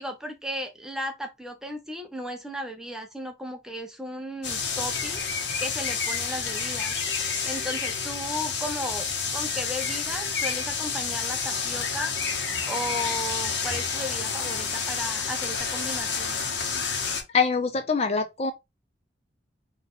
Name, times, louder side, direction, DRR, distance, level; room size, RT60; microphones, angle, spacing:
voice 1, 0.0-5.2 5.6-6.9 7.4-12.1 12.7-16.4, equal, 5° right, 0.6 m, -35 dB
sound 1, 4.4-17.2, left 5 dB, 75° left, 1.0 m, -29 dB
voice 2, 17.3-18.5, left 5 dB, 35° left, 0.4 m, -24 dB
4.0 x 2.6 x 3.5 m
head